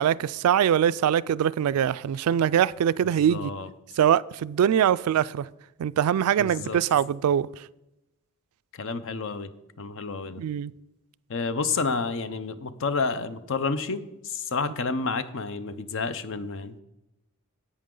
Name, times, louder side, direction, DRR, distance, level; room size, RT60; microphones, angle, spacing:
voice 1, 0.0-3.5 4.0-5.5 5.8-7.5 10.4-10.7, right 9 dB, 80° right, 0.3 m, -23 dB
voice 2, 3.0-3.7 6.4-6.8 8.7-9.5 9.8-10.4 11.3-16.7, left 4 dB, 60° left, 0.6 m, -30 dB
10.5 x 8.4 x 3.8 m
head